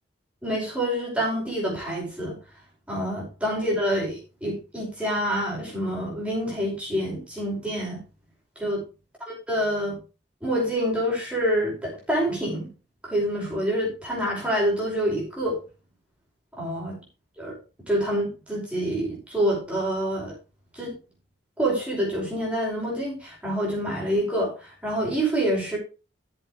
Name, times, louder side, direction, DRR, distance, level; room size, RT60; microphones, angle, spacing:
voice 1, 0.4-2.4 2.9-8.0 8.5-8.8 9.3-10.0 10.4-12.7 13.0-15.6 16.5-17.0 17.4-17.5 17.9-20.3 20.7-20.9 21.6-25.8, equal, 5° right, -4 dB, 5.2 m, -27 dB
13.5 x 7.4 x 3.2 m, 0.32 s
head